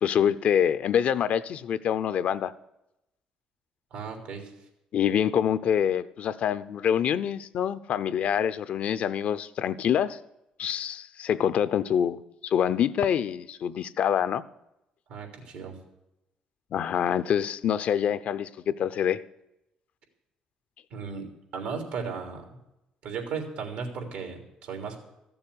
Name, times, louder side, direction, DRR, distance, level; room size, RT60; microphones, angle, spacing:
voice 1, 0.0-2.5 4.9-10.2 10.6-14.4 16.7-19.2, left 9 dB, 65° left, 14 dB, 0.6 m, -26 dB
voice 2, 3.9-4.5 15.1-15.7 20.9-21.3 21.5-22.5 23.0-25.0, right 5 dB, 85° right, 3 dB, 3.3 m, -35 dB
14.5 x 7.1 x 9.8 m, 0.88 s
supercardioid pair, 80°, 2 cm